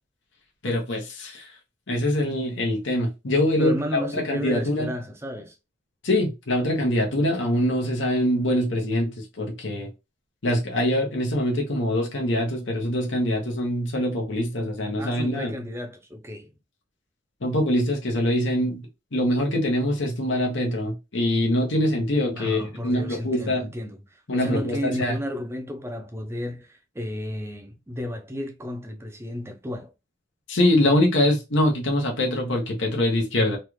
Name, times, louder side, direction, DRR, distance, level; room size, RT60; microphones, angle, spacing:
voice 1, 0.6-1.5 1.9-4.9 6.0-9.9 10.4-15.5 17.4-18.8 19.1-23.7 24.3-25.2 30.5-33.6, left 1 dB, 70° left, 0.9 m, -24 dB
voice 2, 3.6-5.6 15.0-16.5 22.3-29.9, equal, 15° right, 0.5 m, -33 dB
3.2 x 2.4 x 3.1 m
head